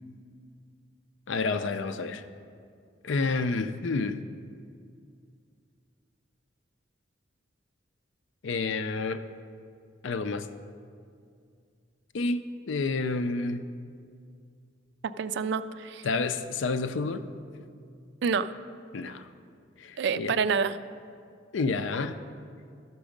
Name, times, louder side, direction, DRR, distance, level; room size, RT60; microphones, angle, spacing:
voice 1, 1.3-2.2 3.0-4.2 8.4-9.2 10.0-10.5 12.1-13.6 16.0-17.2 18.9-19.3 19.8-20.4 21.5-22.2, left 3 dB, 80° left, 11 dB, 0.5 m, -29 dB
voice 2, 15.0-16.0 18.2-18.5 20.0-20.8, right 5 dB, 65° right, 13 dB, 0.3 m, -27 dB
12.5 x 6.1 x 5.1 m, 2.3 s
head